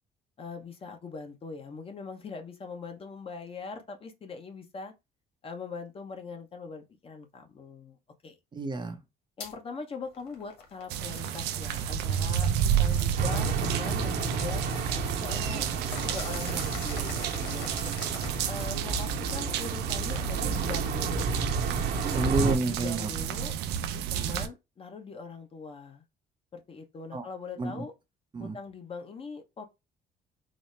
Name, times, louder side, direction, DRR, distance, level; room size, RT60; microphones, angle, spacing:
voice 1, 0.4-4.9 5.4-8.0 8.2-8.4 9.4-14.6 14.9-15.7 16.0-17.7 18.4-21.5 22.7-23.5 23.9-26.0 26.5-27.9 28.4-29.6, left 4 dB, 35° left, 0.9 m, -41 dB
voice 2, 8.5-9.0 22.0-23.1 27.1-27.3 27.6-27.8 28.3-28.6, right 3 dB, 25° right, 0.6 m, -30 dB
sound 1, 9.4-9.5 10.0-18.8, left 5 dB, 85° left, 1.2 m, -45 dB
sound 2, 10.9-24.5, right 9 dB, 85° right, 0.5 m, -31 dB
sound 3, 13.2-22.6, right 4 dB, 65° right, 1.0 m, -32 dB
4.1 x 2.0 x 3.2 m
cardioid pair, 110°, 17 cm